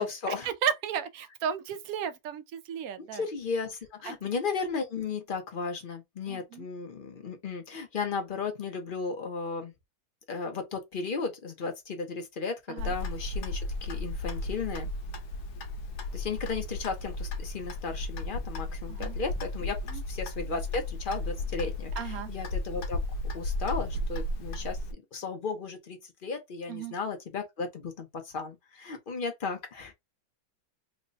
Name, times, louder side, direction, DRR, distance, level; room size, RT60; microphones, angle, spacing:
voice 1, 0.0-0.5 3.0-9.7 10.3-14.9 16.1-19.8 20.1-23.0 23.3-24.8 25.1-29.9, left 4 dB, 45° left, 0.7 m, -35 dB
voice 2, 0.6-3.2 4.1-4.2 6.3-6.6 12.7-12.9 18.9-19.2 19.9-20.0 22.0-22.3 26.7-26.9, right 8 dB, 70° right, 1.0 m, -34 dB
Clock, 12.8-24.9, left 2 dB, 75° left, 1.2 m, -34 dB
3.2 x 2.1 x 3.8 m
omnidirectional pair, 1.7 m